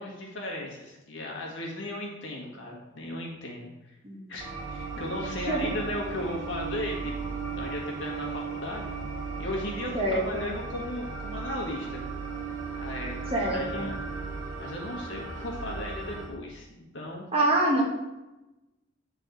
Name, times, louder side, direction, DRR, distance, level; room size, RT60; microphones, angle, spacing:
voice 1, 0.0-4.0 4.3-8.9 9.4-12.0 12.8-14.1 14.6-16.7 16.9-17.3, left 1 dB, 60° left, -2 dB, 1.6 m, -36 dB
sound 1, 4.4-16.3, right 4 dB, 75° right, 1.4 m, -36 dB
voice 2, 5.4-5.7 9.9-10.5 13.3-13.9 17.3-17.8, right 1 dB, 30° right, -2 dB, 1.2 m, -25 dB
8.1 x 4.0 x 3.9 m, 0.98 s
head